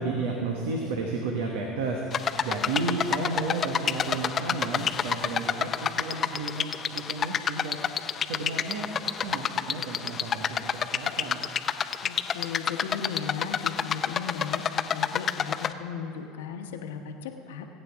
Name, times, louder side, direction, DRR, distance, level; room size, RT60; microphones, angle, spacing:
voice 1, 0.0-2.0 2.4-7.8 8.3-11.4, right 3 dB, 80° right, 1 dB, 1.2 m, -32 dB
sound 1, 2.1-15.7, left 7 dB, 40° left, 0.5 m, -29 dB
voice 2, 12.0-17.7, left 7 dB, 85° left, 5 dB, 1.1 m, -36 dB
21.5 x 9.2 x 3.6 m, 2.8 s
hypercardioid pair, 80°, 0 cm